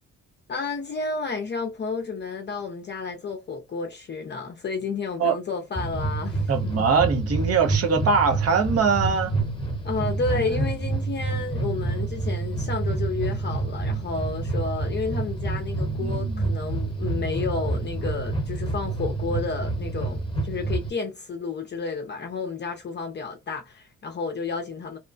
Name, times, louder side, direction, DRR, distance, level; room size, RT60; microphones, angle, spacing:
voice 1, 0.5-6.5 9.8-25.0, left 4 dB, 35° left, 0.6 m, -31 dB
sound 1, 5.8-20.9, right 3 dB, 15° left, 1.0 m, -28 dB
voice 2, 6.5-9.3 16.0-16.4, right 5 dB, 55° right, 0.9 m, -22 dB
3.0 x 2.1 x 2.4 m
cardioid pair, 90°, 30 cm